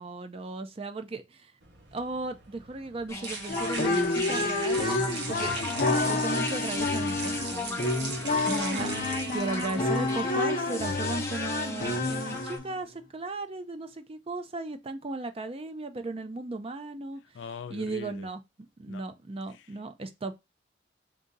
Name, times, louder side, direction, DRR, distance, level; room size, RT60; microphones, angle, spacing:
voice 1, 0.0-1.5 1.9-5.0 5.3-5.5 5.9-7.8 8.5-8.9 9.3-17.2 17.7-18.4 18.8-20.3, right 3 dB, 30° right, 0.5 m, -36 dB
sound 1, 1.6-10.2, right 3 dB, 65° right, 1.0 m, -39 dB
sound 2, 3.1-12.6, left 2 dB, 15° left, 0.6 m, -37 dB
sound 3, 3.5-12.7, left 2 dB, 50° left, 0.7 m, -29 dB
voice 2, 8.2-8.5 17.3-18.3 18.9-19.0 19.5-19.7, left 6 dB, 85° left, 0.4 m, -42 dB
3.7 x 2.7 x 3.9 m
head